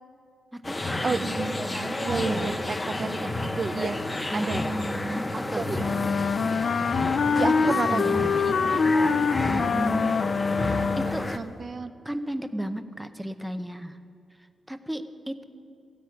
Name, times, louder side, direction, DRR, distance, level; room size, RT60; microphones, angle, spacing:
voice 1, 0.5-1.3 2.1-2.5 4.3-5.8 7.4-8.2 9.5-10.6 11.0-11.3 12.0-14.0 14.7-15.4, equal, 5° right, 9 dB, 0.8 m, -34 dB
sound 1, 0.6-11.4, left 2 dB, 20° left, 0.9 m, -31 dB
voice 2, 1.0-4.0 4.3-4.6 5.6-5.9 7.4-9.7 11.0-11.9, right 4 dB, 45° right, 10 dB, 0.6 m, -32 dB
Wind instrument woodwind instrument, 5.8-11.3, left 5 dB, 60° left, 0.5 m, -25 dB
15.5 x 10.0 x 8.6 m, 2.6 s
cardioid pair, 105°, 0 cm